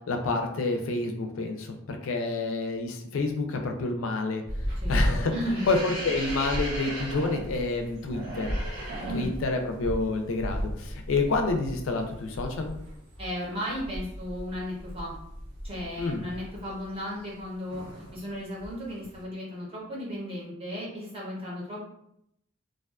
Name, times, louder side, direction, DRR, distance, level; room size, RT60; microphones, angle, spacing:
voice 1, 0.1-4.4 4.9-5.3 5.7-8.6 9.1-12.7 16.0-16.2, left 3 dB, 70° left, 4 dB, 0.4 m, -28 dB
sound 1, 4.5-17.4 17.7-18.2 18.6-19.2, equal, 65° right, 0.9 m, -34 dB
voice 2, 5.3-5.7 9.0-9.3 13.2-15.1 15.6-21.8, equal, 25° right, -5 dB, 0.8 m, -35 dB
2.4 x 2.2 x 2.3 m, 0.77 s
head